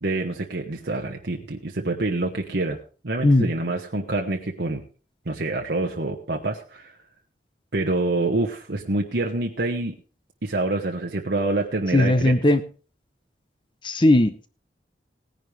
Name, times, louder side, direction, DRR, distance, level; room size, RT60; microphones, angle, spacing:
voice 1, 0.0-2.8 3.0-4.8 5.3-6.9 7.7-9.9 10.4-12.3, right 2 dB, 70° right, 1 dB, 1.2 m, -26 dB
voice 2, 11.9-12.6 13.8-14.5, left 1 dB, 25° left, 11 dB, 0.7 m, -18 dB
18.0 x 10.5 x 3.3 m, 0.36 s
head